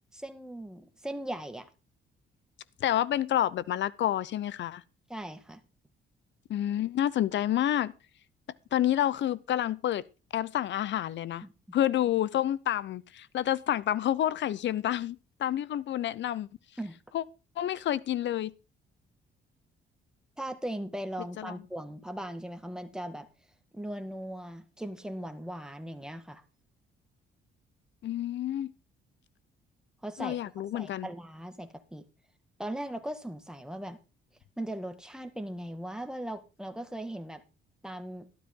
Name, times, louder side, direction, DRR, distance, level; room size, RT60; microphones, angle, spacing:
voice 1, 0.1-1.7 5.1-5.6 11.4-11.5 16.8-17.0 20.4-23.3 23.7-26.4 30.0-30.4 30.7-32.0 32.6-34.0 34.6-37.4 37.8-38.3, right 1 dB, 5° right, 1.9 m, -38 dB
voice 2, 2.8-4.8 6.5-7.9 8.7-10.0 10.3-11.4 11.7-16.5 17.1-17.2 17.6-18.5 21.4-21.5 28.0-28.7 30.2-31.1, left 11 dB, 65° left, 0.8 m, -29 dB
12.5 x 12.5 x 3.8 m
cardioid pair, 90°, 20 cm